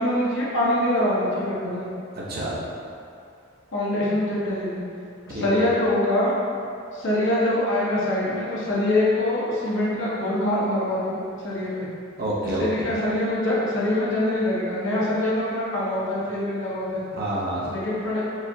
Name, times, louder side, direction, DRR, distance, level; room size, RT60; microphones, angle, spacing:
voice 1, 0.0-1.9 3.7-4.8 5.3-6.3 6.9-11.9 12.6-17.0 17.7-18.3, left 1 dB, 60° left, -7 dB, 0.9 m, -24 dB
voice 2, 2.1-2.6 5.3-5.6 12.2-12.9 17.1-17.7, right 1 dB, 45° right, -6 dB, 0.7 m, -28 dB
4.8 x 2.4 x 2.7 m, 2.5 s
head